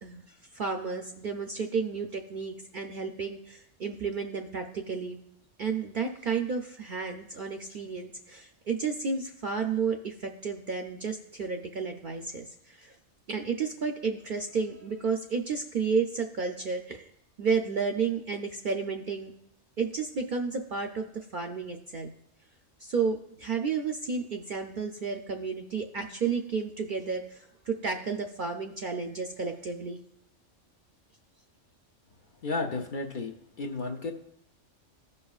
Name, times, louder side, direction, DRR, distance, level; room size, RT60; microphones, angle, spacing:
voice 1, 0.0-5.2 5.6-12.9 13.3-17.1 17.4-19.3 19.8-22.1 22.8-30.0, right 5 dB, 60° right, 4 dB, 0.5 m, -32 dB
voice 2, 32.4-33.3 33.6-34.1, left 3 dB, 55° left, 3 dB, 0.6 m, -32 dB
16.0 x 5.4 x 2.4 m, 0.75 s
omnidirectional pair, 1.3 m